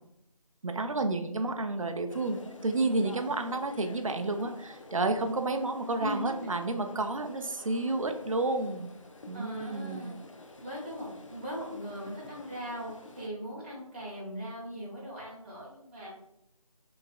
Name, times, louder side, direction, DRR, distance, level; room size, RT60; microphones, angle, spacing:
voice 1, 0.6-8.9 9.3-10.1, right 2 dB, 60° right, 6 dB, 0.5 m, -31 dB
sound 1, 2.1-13.3, left 2 dB, 55° left, 0.5 m, -50 dB
voice 2, 9.3-10.1 10.6-16.1, equal, 20° right, -8 dB, 1.2 m, -39 dB
3.8 x 3.4 x 2.4 m, 0.83 s
figure-of-eight pair, 165°, 19 cm